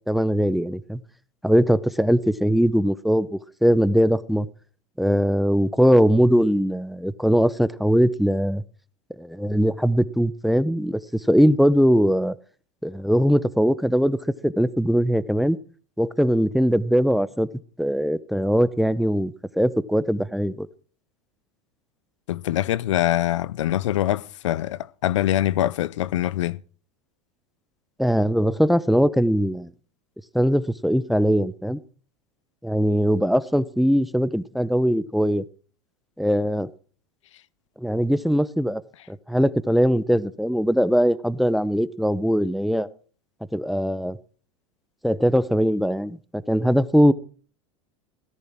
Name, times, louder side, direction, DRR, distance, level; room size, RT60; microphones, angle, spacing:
voice 1, 0.1-1.0 1.4-4.5 5.0-8.6 9.2-11.0 11.3-12.4 12.8-14.2 14.4-15.6 16.0-17.5 17.8-20.7 28.0-29.7 30.3-31.8 32.6-35.4 36.2-36.7 37.8-38.8 39.1-42.9 43.5-44.2 45.0-47.1, equal, ahead, 0.8 m, -21 dB
voice 2, 22.3-26.6, left 13 dB, 85° left, 0.6 m, -24 dB
17.0 x 10.5 x 6.0 m
hypercardioid pair, 100°, 15 cm